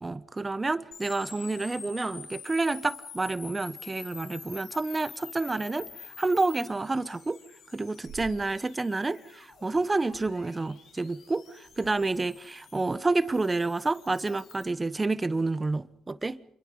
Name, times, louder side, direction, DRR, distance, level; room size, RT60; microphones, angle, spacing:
voice 1, 0.0-5.9 6.2-7.4 7.7-16.4, right 3 dB, 25° right, 1.1 m, -29 dB
sound 1, 0.9-14.6, left 6 dB, 75° left, 4.1 m, -48 dB
sound 2, 8.0-8.4 9.5-9.7 10.0-10.5 11.6-12.3, right 4 dB, 75° right, 2.0 m, -48 dB
27.5 x 23.0 x 5.5 m
cardioid pair, 75°, 0 cm